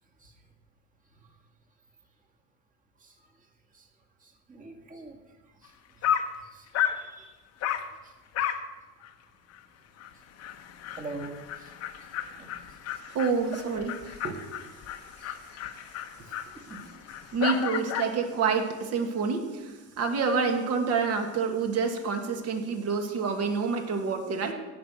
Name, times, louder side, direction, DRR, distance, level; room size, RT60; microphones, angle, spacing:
voice 1, 4.5-5.2 6.5-7.3 11.0-11.7 12.4-12.5 15.2-15.3 16.5-16.8, right 3 dB, 20° right, 3 dB, 1.9 m, -43 dB
Dog, 5.7-5.8 6.0-6.4 6.7-7.0 7.6-7.9 8.3-8.7 9.0-9.1 9.5-9.6 10.0-10.1 10.4-18.2, left 9 dB, 45° left, 0.9 m, -33 dB
voice 2, 13.1-14.4 17.3-24.5, right 5 dB, 45° right, 4 dB, 1.9 m, -28 dB
17.0 x 5.8 x 6.4 m, 1.2 s
cardioid pair, 135°, 36 cm